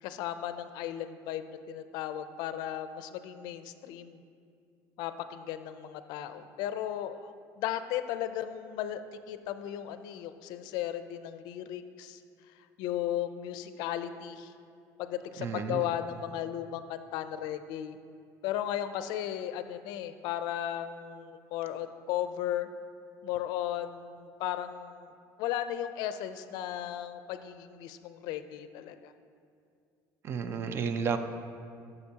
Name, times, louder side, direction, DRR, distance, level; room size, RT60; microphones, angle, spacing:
voice 1, 0.0-4.2 5.0-9.0 9.3-12.2 12.8-14.5 15.0-18.0 18.4-22.7 23.2-25.1 25.4-29.1, left 11 dB, 65° left, 11 dB, 0.4 m, -35 dB
voice 2, 15.4-15.9 30.2-31.2, right 6 dB, 35° right, 9 dB, 0.4 m, -32 dB
11.5 x 6.7 x 2.8 m, 2.3 s
cardioid pair, 155°, 8 cm